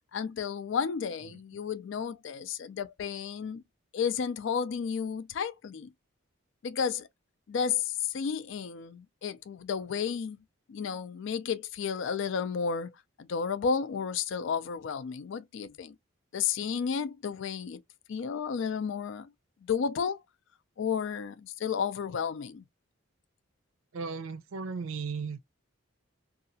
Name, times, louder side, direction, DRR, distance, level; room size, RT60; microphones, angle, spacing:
voice 1, 0.1-3.6 3.9-5.9 6.6-7.1 7.5-10.4 10.7-12.9 13.2-16.0 16.3-17.8 18.1-19.3 19.6-20.2 20.8-22.6, left 6 dB, 60° left, 0.3 m, -32 dB
voice 2, 1.3-1.6 23.9-25.4, right 5 dB, 70° right, 0.5 m, -36 dB
2.7 x 2.4 x 2.6 m
head